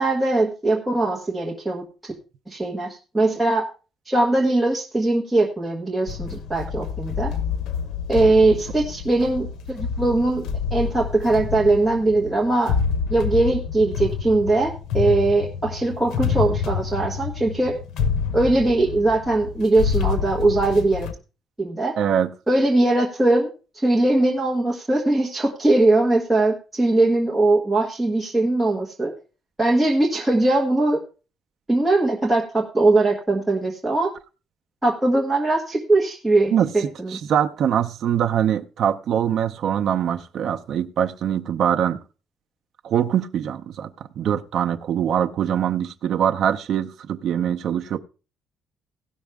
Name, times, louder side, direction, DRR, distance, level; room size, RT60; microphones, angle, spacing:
voice 1, 0.0-2.1 2.5-3.7 4.1-7.3 8.1-10.4 10.7-12.8 13.1-17.7 18.3-21.1 21.6-21.9 22.5-23.5 23.8-29.1 29.6-31.0 31.7-34.1 34.8-37.2, right 2 dB, 10° right, 1.4 m, -20 dB
sound 1, 6.1-21.1, left 6 dB, 75° left, 0.9 m, -28 dB
voice 2, 22.0-22.3 36.5-42.0 42.8-43.9 44.2-48.0, right 9 dB, 60° right, 0.6 m, -23 dB
16.5 x 6.2 x 3.5 m
cardioid pair, 155°, 0 cm